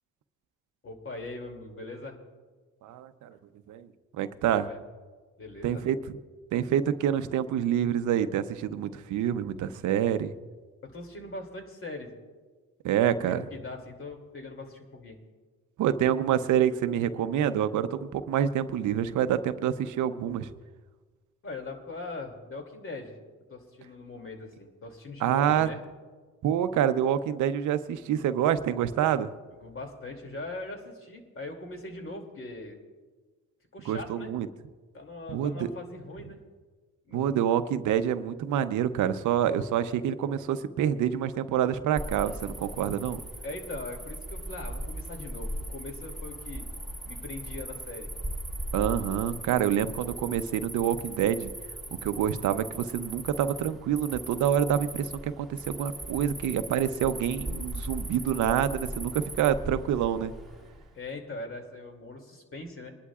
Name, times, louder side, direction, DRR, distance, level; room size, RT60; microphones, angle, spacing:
voice 1, 0.8-2.2 4.5-4.8 5.4-5.8 10.8-12.1 13.1-15.2 21.4-23.1 23.5-25.8 29.6-32.8 33.7-34.3 34.9-36.4 37.1-37.4 43.4-46.6 47.0-48.1 60.9-62.9, left 2 dB, 45° left, 3 dB, 2.6 m, -41 dB
voice 2, 2.8-3.4 3.7-3.9 4.2-4.7 5.6-6.2 6.5-10.3 12.8-13.4 15.8-20.5 25.2-25.7 26.4-29.3 33.9-34.5 35.3-35.7 37.1-43.2 48.7-51.5 52.0-60.3, right 9 dB, 75° right, 10 dB, 0.7 m, -27 dB
Cricket, 42.0-60.9, right 1 dB, ahead, 1.7 m, -38 dB
25.5 x 11.0 x 2.4 m, 1.4 s
cardioid pair, 90°, 30 cm